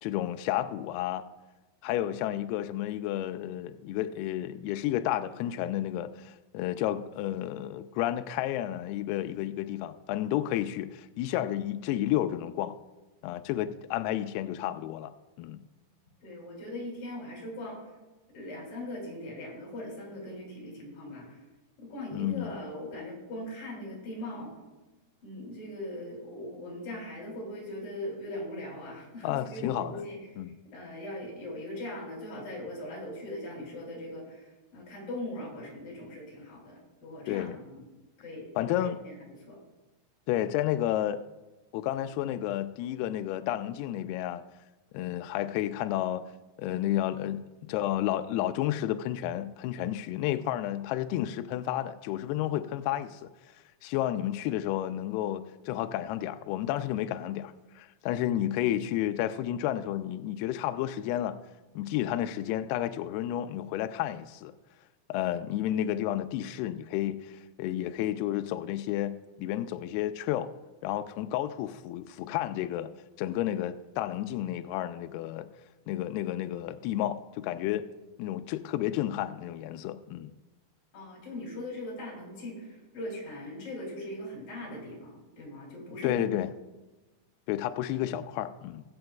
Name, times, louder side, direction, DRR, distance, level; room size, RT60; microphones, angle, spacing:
voice 1, 0.0-1.2 1.8-12.8 13.2-15.6 22.1-22.5 29.2-30.0 30.4-30.5 37.3-37.6 38.6-39.0 40.3-41.2 41.7-44.4 44.9-46.3 46.6-53.3 53.8-61.4 61.8-64.5 65.1-70.5 70.8-72.9 73.2-75.5 75.9-77.8 78.2-80.3 86.0-86.5 87.5-88.8, left 12 dB, 85° left, 2.3 m, -31 dB
voice 2, 16.2-17.8 18.3-21.3 21.8-24.5 25.2-30.2 30.7-34.5 34.7-37.9 38.2-39.2 39.5-39.6 80.9-86.2, left 1 dB, 55° left, 4.4 m, -40 dB
21.5 x 7.8 x 2.3 m
omnidirectional pair, 4.9 m